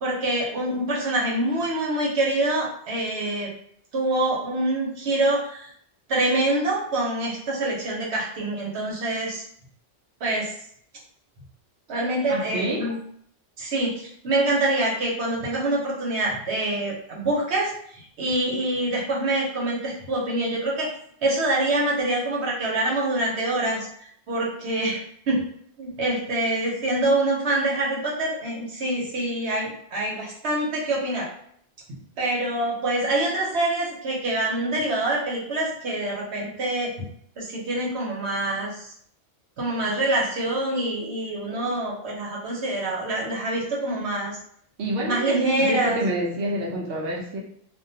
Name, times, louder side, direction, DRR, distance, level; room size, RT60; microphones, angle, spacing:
voice 1, 0.0-3.5 3.9-5.7 6.1-9.4 10.2-10.5 11.9-13.0 13.6-20.9 21.2-23.9 24.3-25.4 25.8-31.3 32.2-36.9 37.4-38.8 39.6-44.3 45.0-46.0, right 1 dB, 90° right, -3 dB, 1.1 m, -25 dB
voice 2, 12.3-12.9 44.8-47.4, right 1 dB, 70° right, -2 dB, 0.8 m, -27 dB
2.4 x 2.2 x 2.6 m, 0.65 s
omnidirectional pair, 1.1 m